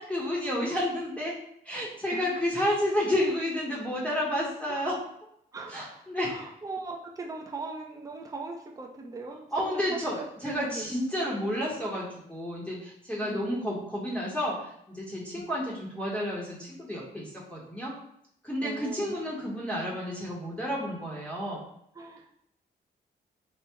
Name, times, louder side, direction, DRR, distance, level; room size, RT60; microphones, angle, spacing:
voice 1, 0.0-1.3 1.6-5.0 5.7-6.3 9.5-17.9 18.4-21.6, left 1 dB, 5° left, -5 dB, 0.8 m, -31 dB
voice 2, 5.5-9.7 10.2-10.9 13.2-13.5 18.6-19.2 21.9-22.3, right 3 dB, 20° right, 1 dB, 0.5 m, -40 dB
4.3 x 2.1 x 3.4 m, 0.71 s
wide cardioid pair, 125°, 17 cm